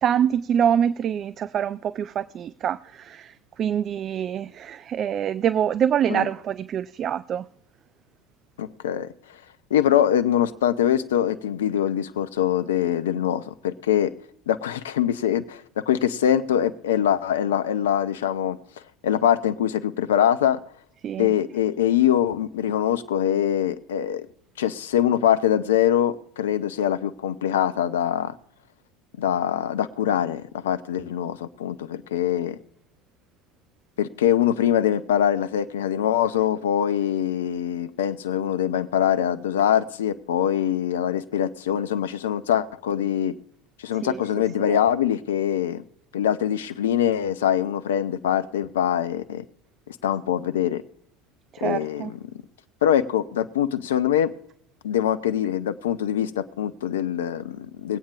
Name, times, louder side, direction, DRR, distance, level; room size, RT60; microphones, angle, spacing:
voice 1, 0.0-7.4 21.0-21.3 44.0-44.2 44.6-44.8 51.5-52.1, right 9 dB, 40° right, 0.3 m, -25 dB
voice 2, 8.6-9.1 9.7-14.1 14.5-18.6 19.0-20.6 21.2-24.3 24.6-28.3 29.2-32.6 34.0-43.3 43.8-45.8 46.1-49.4 49.9-50.8 51.6-52.2 52.8-54.3 54.8-58.0, left 10 dB, 75° left, 0.5 m, -23 dB
22.0 x 8.6 x 2.4 m
figure-of-eight pair, 70°, 0 cm